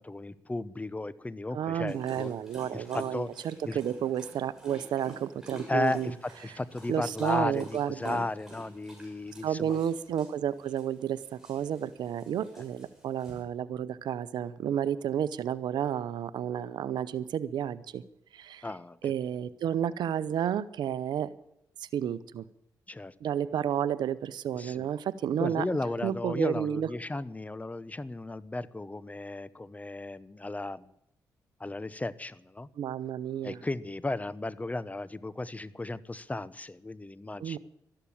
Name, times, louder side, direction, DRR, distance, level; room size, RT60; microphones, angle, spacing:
voice 1, 0.0-2.3 2.7-3.3 3.7-3.8 5.7-6.1 6.4-9.8 18.6-19.1 22.9-23.1 24.5-24.9 25.4-30.9 31.6-32.7 33.4-37.6, left 2 dB, 20° left, 17 dB, 0.9 m, -35 dB
voice 2, 1.5-6.1 6.9-8.2 9.4-18.0 18.3-18.6 19.0-21.3 21.8-22.5 23.2-25.7 26.0-26.9 32.8-33.6 37.4-37.6, right 9 dB, 80° right, 17 dB, 0.7 m, -31 dB
Dog, 1.9-13.4, equal, 5° right, 6.8 m, -51 dB
13.0 x 11.5 x 8.7 m, 0.80 s
cardioid pair, 60°, 7 cm